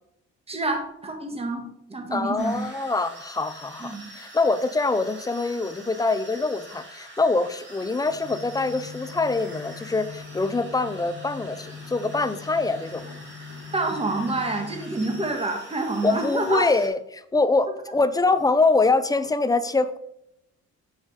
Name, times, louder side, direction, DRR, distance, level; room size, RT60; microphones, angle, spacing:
voice 1, 0.5-2.6 3.8-4.0 13.7-16.7, right 2 dB, 20° right, 3 dB, 1.6 m, -27 dB
voice 2, 2.1-13.0 16.0-20.0, left 3 dB, 10° left, 12 dB, 0.5 m, -24 dB
sound 1, 2.4-16.9, right 1 dB, 35° right, 3.1 m, -45 dB
sound 2, 8.0-15.3, left 5 dB, 75° left, 1.5 m, -42 dB
7.0 x 5.5 x 4.8 m, 0.78 s
cardioid pair, 90°, 30 cm